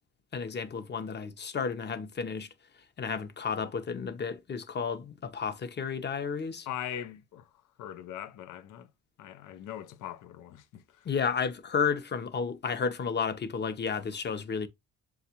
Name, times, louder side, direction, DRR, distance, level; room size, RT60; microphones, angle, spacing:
voice 1, 0.3-2.5 3.0-6.7 11.0-14.7, left 6 dB, 35° left, 0.7 m, -32 dB
voice 2, 6.7-7.5 7.8-8.9 9.2-11.1, left 11 dB, 85° left, 0.6 m, -41 dB
7.2 x 2.4 x 2.8 m
cardioid pair, 90°, 30 cm